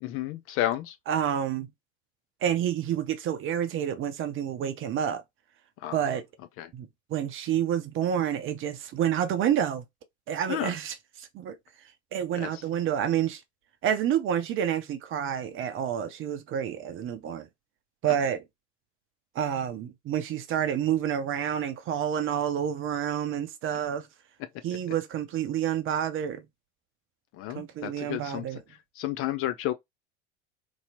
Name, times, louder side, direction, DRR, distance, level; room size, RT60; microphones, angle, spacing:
voice 1, 0.0-1.0 5.8-6.0 6.6-6.7 10.5-10.7 12.3-12.6 27.3-28.5 29.0-29.7, left 13 dB, 40° left, 0.4 m, -31 dB
voice 2, 1.1-1.7 2.4-5.2 5.9-6.3 6.7-9.9 10.3-11.6 12.1-13.4 13.8-17.5 18.0-18.4 19.3-24.1 24.6-26.5 27.5-28.6, right 9 dB, 35° right, 0.6 m, -29 dB
3.0 x 2.8 x 2.7 m
figure-of-eight pair, 70°, 36 cm